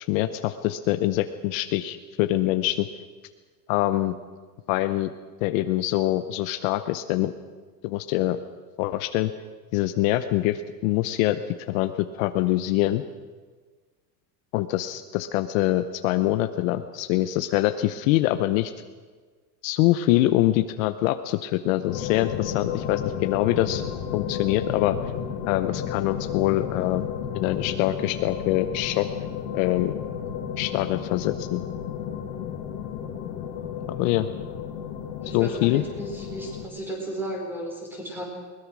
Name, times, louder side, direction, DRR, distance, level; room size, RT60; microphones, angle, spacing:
voice 1, 0.1-2.9 3.7-4.1 4.7-5.1 5.4-7.3 7.8-8.4 8.8-9.3 9.7-11.4 11.7-13.0 14.5-18.7 19.6-23.8 24.1-25.0 25.4-27.1 27.3-29.1 29.5-30.0 30.6-31.6 33.9-34.3 35.2-35.8, left 15 dB, 55° left, 10 dB, 0.9 m, -24 dB
sound 1, 21.9-36.7, left 8 dB, 75° left, 2.4 m, -33 dB
voice 2, 35.2-38.2, right 1 dB, 5° right, 0 dB, 4.2 m, -35 dB
21.5 x 20.5 x 6.3 m, 1.4 s
cardioid pair, 180°, 49 cm